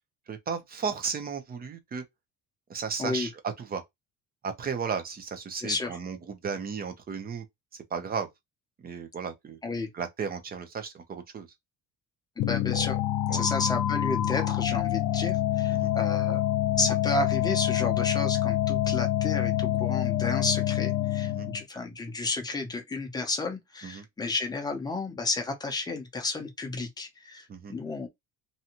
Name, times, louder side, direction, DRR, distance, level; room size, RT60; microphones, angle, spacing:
voice 1, 0.3-2.0 2.7-3.8 4.4-7.4 7.9-8.3 8.8-9.6 9.9-11.5 13.3-13.4 15.8-15.9 21.2-21.5 23.8-24.0 27.5-27.7, right 6 dB, 30° right, 0.6 m, -34 dB
voice 2, 5.6-6.0 9.6-9.9 12.4-13.0 13.3-16.4 16.8-28.1, left 3 dB, 10° left, 0.6 m, -32 dB
sound 1, 12.4-21.6, left 13 dB, 65° left, 0.5 m, -26 dB
2.7 x 2.2 x 2.8 m
cardioid pair, 145°, 33 cm